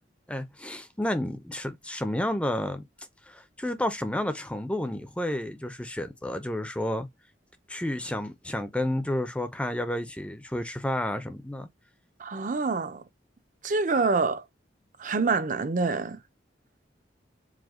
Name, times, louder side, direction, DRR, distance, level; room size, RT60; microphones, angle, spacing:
voice 1, 0.3-2.9 3.3-7.1 7.7-11.7, left 1 dB, 5° left, 0.5 m, -31 dB
voice 2, 12.2-13.0 13.6-14.4 15.0-16.2, right 4 dB, 45° right, 0.5 m, -26 dB
4.9 x 2.2 x 3.6 m
head